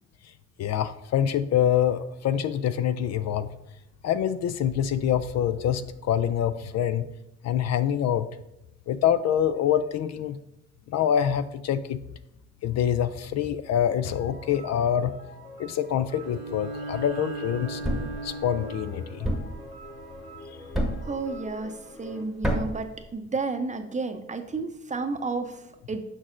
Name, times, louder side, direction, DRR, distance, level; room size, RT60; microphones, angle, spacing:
voice 1, 0.6-3.5 4.0-7.1 7.4-8.3 8.9-10.4 10.9-12.0 12.6-15.1 15.6-17.8 18.2-19.3, left 9 dB, 60° left, 12 dB, 0.4 m, -25 dB
sound 1, 13.7-22.2, equal, 40° left, 1.1 m, -46 dB
Bowed string instrument, 16.2-19.3, right 2 dB, 60° right, 0.9 m, -37 dB
Thump thud, 17.8-18.2 19.2-19.6 20.7-21.1 22.4-22.8, equal, ahead, 1.0 m, -27 dB
voice 2, 21.0-21.7 22.0-26.0, right 3 dB, 25° right, 7 dB, 0.6 m, -32 dB
6.2 x 6.0 x 2.5 m, 0.89 s
cardioid pair, 90°, 30 cm